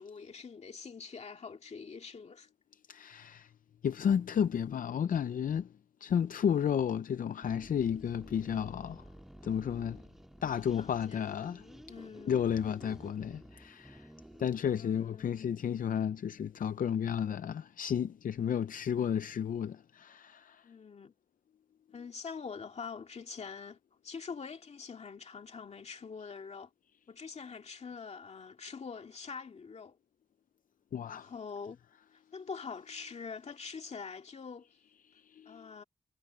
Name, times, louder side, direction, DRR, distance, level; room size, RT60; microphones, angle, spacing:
voice 1, 0.0-2.5 10.8-11.6 11.9-12.4 14.8-15.3 20.6-21.1 21.9-23.8 24.0-26.7 27.1-30.0 31.1-31.8 32.3-34.7 35.5-35.8, left 5 dB, 50° left, 2.1 m, -44 dB
voice 2, 2.9-3.5 3.8-5.7 6.0-9.0 9.4-10.0 10.4-11.7 12.3-14.1 14.4-20.6 30.9-31.3 35.3-35.6, left 8 dB, 80° left, 0.5 m, -32 dB
sound 1, 7.4-14.6, equal, 5° right, 1.6 m, -52 dB
wide cardioid pair, 180°, 14 cm